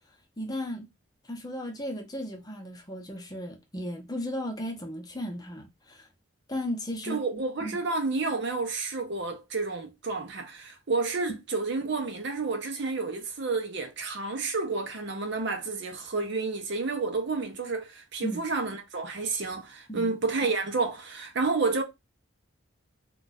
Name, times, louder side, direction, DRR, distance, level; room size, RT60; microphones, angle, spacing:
voice 1, 0.4-0.9 1.3-6.1 6.5-7.2 7.6-7.8 18.2-18.4 19.9-20.1, equal, 20° left, 0.7 m, -35 dB
voice 2, 7.0-21.8, right 3 dB, 55° right, 0.6 m, -30 dB
2.4 x 2.3 x 4.0 m
head